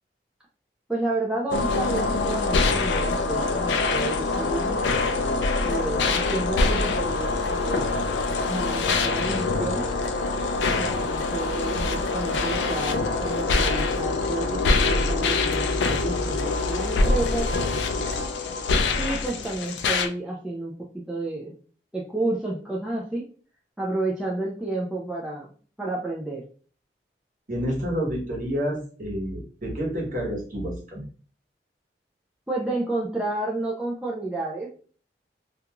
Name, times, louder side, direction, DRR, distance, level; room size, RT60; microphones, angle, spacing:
voice 1, 0.9-4.8 5.6-8.0 8.5-9.9 10.7-17.5 18.9-21.5 21.9-23.3 23.8-25.5 25.8-26.4 32.5-34.8, right 2 dB, 5° right, -4 dB, 0.3 m, -31 dB
sound 1, 1.5-20.1, left 3 dB, 85° left, 0.4 m, -24 dB
voice 2, 27.5-31.0, equal, 45° right, -3 dB, 1.0 m, -29 dB
2.5 x 2.3 x 2.8 m, 0.42 s
head